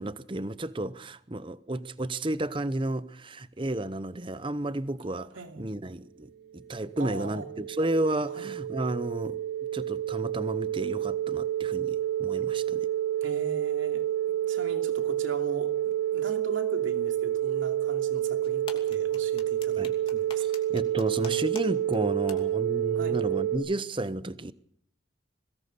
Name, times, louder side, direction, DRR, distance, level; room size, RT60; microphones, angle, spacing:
voice 1, 0.0-5.3 5.6-9.4 9.7-12.9 19.8-19.9 20.7-24.5, right 1 dB, 25° right, 0.8 m, -32 dB
voice 2, 5.3-5.8 7.0-7.5 8.3-8.5 13.2-20.4 22.9-23.2, right 2 dB, 85° right, 2.7 m, -40 dB
sound 1, 6.5-23.6, right 12 dB, 55° right, 2.1 m, -29 dB
sound 2, 18.4-21.6 21.9-22.0 22.3-22.4, left 5 dB, 30° left, 2.7 m, -43 dB
22.0 x 18.5 x 6.7 m
head